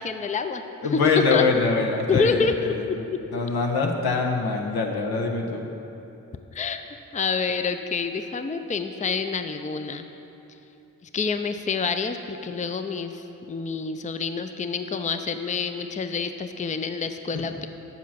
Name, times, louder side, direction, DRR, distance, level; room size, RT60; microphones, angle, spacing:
voice 1, 0.0-0.6 0.9-1.4 2.1-3.2 6.5-6.8 7.1-10.1 11.1-13.2 13.5-17.7, left 5 dB, 20° left, 8 dB, 0.5 m, -27 dB
voice 2, 0.8-2.9 3.3-5.7, left 4 dB, 75° left, 2 dB, 1.0 m, -24 dB
7.4 x 7.1 x 5.8 m, 3.0 s
supercardioid pair, 40°, 37 cm